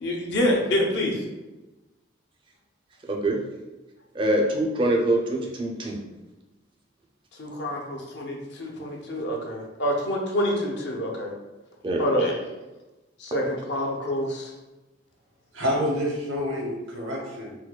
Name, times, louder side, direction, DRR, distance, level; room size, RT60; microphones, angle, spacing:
voice 1, 0.0-1.2 7.4-11.3 12.0-12.4 13.2-14.5, equal, 60° left, 0 dB, 0.6 m, -27 dB
voice 2, 4.1-6.0 11.8-12.0, right 1 dB, 25° right, 0 dB, 0.4 m, -24 dB
voice 3, 15.5-17.5, equal, 85° right, -2 dB, 0.9 m, -28 dB
4.4 x 2.2 x 2.2 m, 1.1 s
head